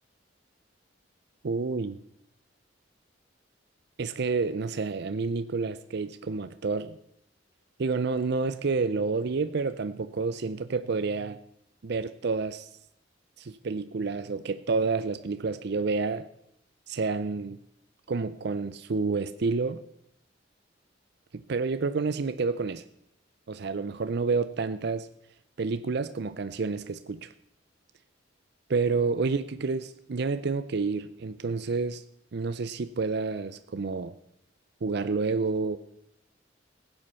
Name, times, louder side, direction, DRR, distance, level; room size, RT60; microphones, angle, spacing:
voice 1, 1.4-2.0 4.0-7.0 7.8-11.4 11.8-12.7 13.4-16.3 16.9-17.6 18.1-19.8 21.3-22.8 23.5-25.1 25.6-27.3 28.7-32.0 32.3-34.1 34.8-35.8, right 4 dB, 60° right, 0.5 m, -29 dB
16.5 x 7.9 x 5.6 m
head